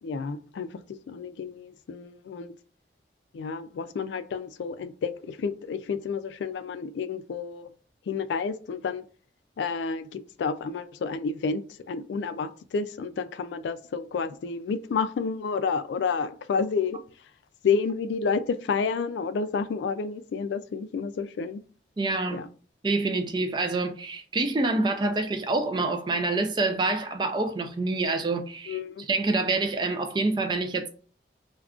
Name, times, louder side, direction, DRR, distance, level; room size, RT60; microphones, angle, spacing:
voice 1, 0.0-0.7 1.1-2.5 3.3-7.7 8.1-9.1 9.6-17.0 17.6-21.6 22.3-22.5 28.7-29.1, left 5 dB, 85° left, 0.3 m, -30 dB
voice 2, 22.0-22.4 22.8-28.8 29.1-30.9, right 3 dB, 25° right, 0.3 m, -26 dB
2.4 x 2.2 x 3.5 m
head